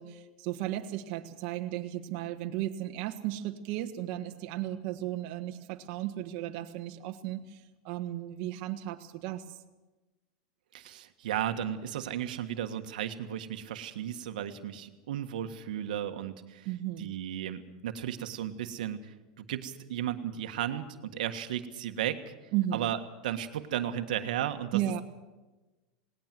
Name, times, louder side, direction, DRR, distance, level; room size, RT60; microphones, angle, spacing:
voice 1, 0.0-9.6 16.6-17.1 22.5-22.8 24.7-25.0, right 13 dB, 50° right, 4 dB, 1.5 m, -35 dB
voice 2, 10.7-16.7 17.0-22.3 22.7-25.0, right 10 dB, 85° right, 7 dB, 1.5 m, -35 dB
19.0 x 18.5 x 7.6 m, 1.1 s
supercardioid pair, 155°, 4 cm